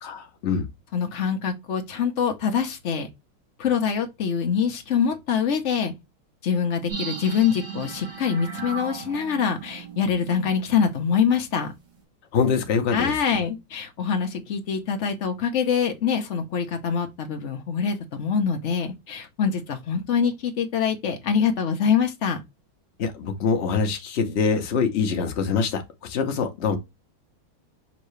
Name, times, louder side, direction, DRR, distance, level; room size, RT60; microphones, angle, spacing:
voice 1, 0.0-0.7 12.3-13.2 23.0-26.8, left 5 dB, 90° left, 0.5 m, -24 dB
voice 2, 0.9-3.1 3.6-5.9 6.4-11.7 12.9-22.4, left 7 dB, 60° left, 0.8 m, -24 dB
sound 1, 6.9-11.3 11.6-11.7, right 6 dB, 60° right, 2.1 m, -37 dB
5.8 x 2.7 x 3.1 m
omnidirectional pair, 2.3 m